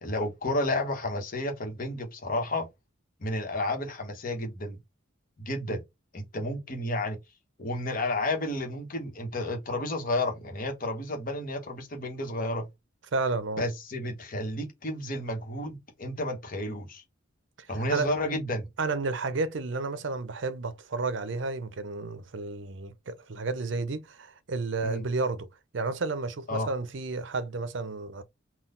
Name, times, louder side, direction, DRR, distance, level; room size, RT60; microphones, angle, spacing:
voice 1, 0.0-2.7 3.2-4.8 5.4-5.8 6.1-7.2 7.6-12.7 13.6-17.0 17.7-18.7 24.8-25.0 26.5-26.7, left 1 dB, 45° left, 1.1 m, -31 dB
voice 2, 13.1-13.7 17.6-18.1 18.8-25.5 25.7-28.2, right 3 dB, 60° right, 0.6 m, -31 dB
3.9 x 2.3 x 3.8 m
head